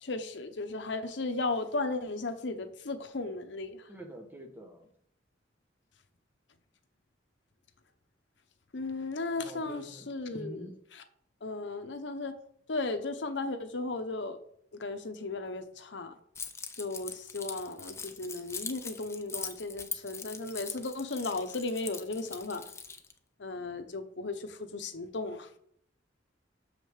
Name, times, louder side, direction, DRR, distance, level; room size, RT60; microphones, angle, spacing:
voice 1, 0.0-3.9 8.7-11.0 11.4-12.4 12.7-14.4 14.8-16.2 16.8-22.6 23.4-25.5, left 3 dB, 70° left, 8 dB, 0.8 m, -35 dB
voice 2, 3.9-4.9 9.4-10.7, right 1 dB, 10° right, 3 dB, 1.1 m, -46 dB
Keys jangling, 16.4-23.1, left 5 dB, 15° left, 0.5 m, -42 dB
6.5 x 5.2 x 6.3 m, 0.67 s
head